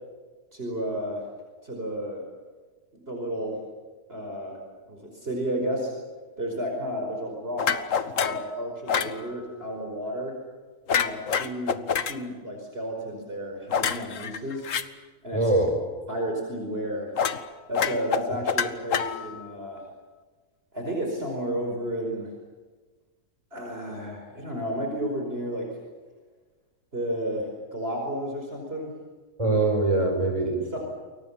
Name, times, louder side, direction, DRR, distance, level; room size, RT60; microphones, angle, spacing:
voice 1, 0.5-1.2 1.6-2.2 2.9-3.6 4.1-4.6 4.9-5.9 6.4-7.9 8.2-10.4 10.9-14.7 15.2-15.5 16.1-17.1 17.7-19.8 20.7-22.3 23.5-25.8 26.9-28.9 30.6-30.8, equal, 40° right, 1 dB, 5.3 m, -32 dB
sound 1, 7.6-8.5 8.9-9.2 10.9-12.2 13.7-14.8 17.2-17.4 17.7-19.5, left 7 dB, 55° left, 1.4 m, -26 dB
voice 2, 15.3-15.7 29.4-30.8, right 2 dB, 20° right, 3 dB, 6.1 m, -23 dB
29.0 x 23.5 x 7.4 m, 1.3 s
omnidirectional pair, 1.7 m